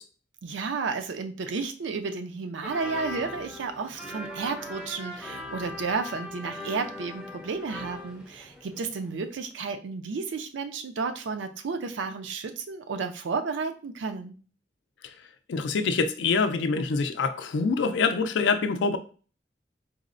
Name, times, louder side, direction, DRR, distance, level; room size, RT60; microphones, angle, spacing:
voice 1, 0.4-14.4, right 4 dB, 90° right, 7 dB, 0.4 m, -32 dB
sound 1, 2.6-9.2 9.5-9.6, left 2 dB, 5° right, 0.4 m, -40 dB
voice 2, 15.5-19.0, left 4 dB, 80° left, 8 dB, 0.4 m, -25 dB
4.0 x 2.0 x 2.5 m, 0.39 s
head